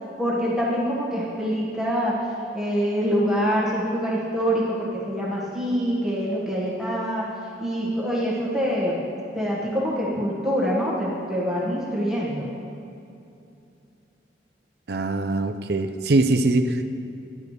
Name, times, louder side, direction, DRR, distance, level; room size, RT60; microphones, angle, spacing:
voice 1, 0.2-2.2 2.5-7.3 7.6-9.0 9.3-12.5, equal, 5° right, -7 dB, 1.6 m, -25 dB
voice 2, 14.9-16.8, right 2 dB, 65° right, 8 dB, 0.5 m, -22 dB
11.5 x 10.5 x 3.3 m, 2.7 s
head